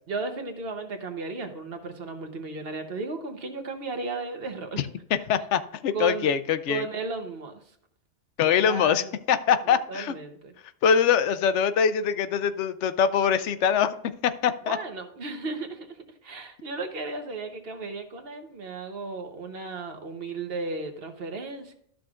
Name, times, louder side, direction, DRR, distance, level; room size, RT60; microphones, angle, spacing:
voice 1, 0.1-4.9 5.9-6.3 6.7-7.6 8.4-9.1 9.7-10.5 14.6-21.7, right 3 dB, 55° right, 5 dB, 1.2 m, -35 dB
voice 2, 5.3-6.9 8.4-9.0 9.3-10.1 10.8-14.0 14.2-14.8, left 7 dB, 80° left, 13 dB, 0.9 m, -23 dB
12.5 x 6.2 x 2.4 m, 0.69 s
omnidirectional pair, 1.2 m